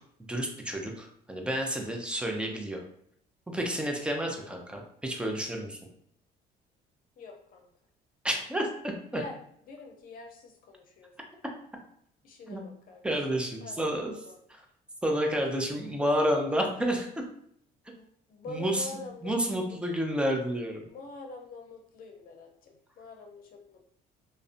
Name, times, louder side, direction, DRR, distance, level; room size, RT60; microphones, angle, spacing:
voice 1, 0.3-2.8 3.5-5.8 8.2-9.2 12.5-12.6 13.0-14.1 15.0-17.1 18.5-18.9 19.2-20.9, equal, 5° right, 1 dB, 0.4 m, -30 dB
voice 2, 4.2-4.5 7.2-7.7 9.1-9.4 9.7-11.1 12.2-13.3 13.6-14.4 17.9-19.8 20.9-23.8, left 4 dB, 55° left, 2 dB, 0.6 m, -45 dB
2.5 x 2.1 x 2.5 m, 0.70 s
cardioid pair, 110°, 17 cm